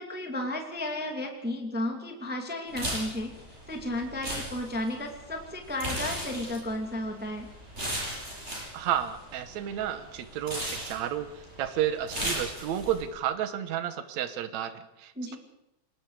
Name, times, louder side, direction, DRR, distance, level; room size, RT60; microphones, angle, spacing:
voice 1, 0.0-3.3 3.7-7.5 15.2-15.4, left 1 dB, 5° right, 3 dB, 2.0 m, -33 dB
sound 1, 2.7-13.0, equal, 20° right, 8.2 m, -37 dB
voice 2, 8.7-15.4, right 10 dB, 65° right, 10 dB, 2.4 m, -32 dB
25.5 x 21.0 x 5.0 m, 0.89 s
omnidirectional pair, 3.5 m